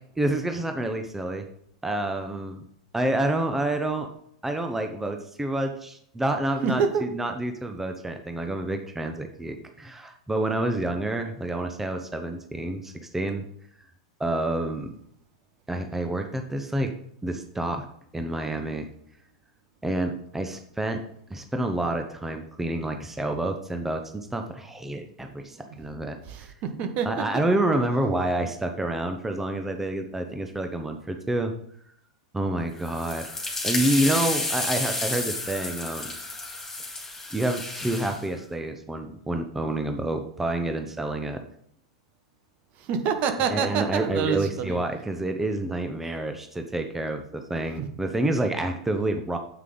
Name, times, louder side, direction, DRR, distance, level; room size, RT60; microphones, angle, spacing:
voice 1, 0.2-1.4 1.8-2.6 2.9-4.1 4.4-13.5 14.2-14.9 15.7-16.9 17.2-17.9 18.1-18.9 19.8-21.0 21.3-26.5 27.0-31.5 32.3-33.3 33.6-36.1 36.8-36.9 37.3-41.4 43.5-49.4, right 1 dB, 10° right, 5 dB, 1.0 m, -28 dB
voice 2, 6.6-7.0 26.3-27.2 42.9-44.8, right 6 dB, 45° right, 8 dB, 1.4 m, -26 dB
sound 1, 32.8-38.2, left 2 dB, 10° left, 3.0 m, -31 dB
9.3 x 7.8 x 3.9 m, 0.68 s
hypercardioid pair, 100°, 3 cm